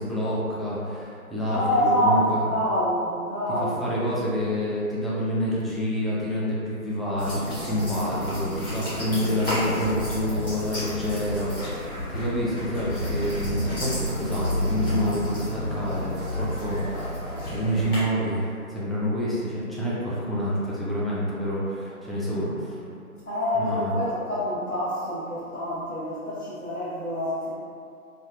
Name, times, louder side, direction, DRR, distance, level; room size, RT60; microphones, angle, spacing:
voice 1, 0.0-2.4 3.6-11.8 12.1-17.2 17.5-22.8 23.5-23.9, equal, ahead, -9 dB, 0.3 m, -28 dB
voice 2, 1.5-4.3 12.8-13.0 23.3-27.5, equal, 70° left, -12 dB, 0.9 m, -26 dB
sound 1, 7.2-18.0, left 1 dB, 40° left, 1.1 m, -31 dB
2.6 x 2.3 x 2.2 m, 2.4 s
figure-of-eight pair, 160°, 45 cm